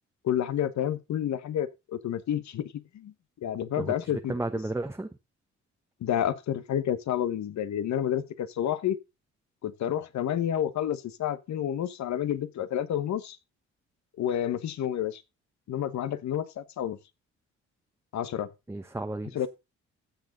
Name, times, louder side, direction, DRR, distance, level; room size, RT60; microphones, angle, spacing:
voice 1, 0.2-3.1 3.4-4.3 6.0-9.0 9.6-13.4 14.2-15.2 15.7-17.0 18.1-18.5 19.3-19.5, left 10 dB, 65° left, 1.1 m, -29 dB
voice 2, 3.8-5.1 18.7-19.5, right 2 dB, 10° right, 0.9 m, -33 dB
15.0 x 6.5 x 3.9 m
cardioid pair, 90°, 30 cm